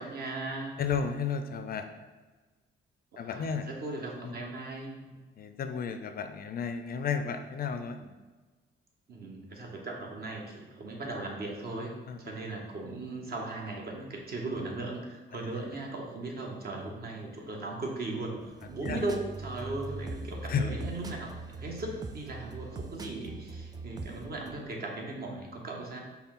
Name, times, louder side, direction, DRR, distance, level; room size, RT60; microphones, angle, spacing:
voice 1, 0.0-0.7 3.1-5.2 9.1-18.4 18.7-21.3 21.6-26.0, right 2 dB, 50° right, 0 dB, 1.0 m, -38 dB
voice 2, 0.8-1.9 3.2-3.7 4.2-4.3 5.4-8.0 12.1-12.2 18.8-19.0 20.5-20.7, left 6 dB, 50° left, 8 dB, 0.4 m, -32 dB
sound 1, 18.4-24.6, right 2 dB, 20° right, 0.4 m, -41 dB
5.4 x 2.2 x 4.1 m, 1.3 s
cardioid pair, 90°, 20 cm